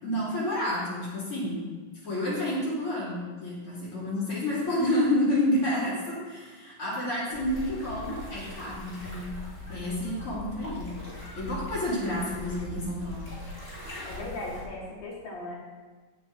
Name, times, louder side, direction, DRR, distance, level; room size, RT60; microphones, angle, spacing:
voice 1, 0.0-1.7 2.0-9.3 9.7-10.9 11.4-13.3, left 1 dB, 35° left, -8 dB, 2.9 m, -29 dB
sound 1, 7.3-14.6, left 1 dB, 20° left, 1.9 m, -41 dB
voice 2, 14.0-15.6, left 2 dB, 55° left, -4 dB, 2.9 m, -37 dB
17.0 x 5.9 x 3.7 m, 1.4 s
omnidirectional pair, 5.9 m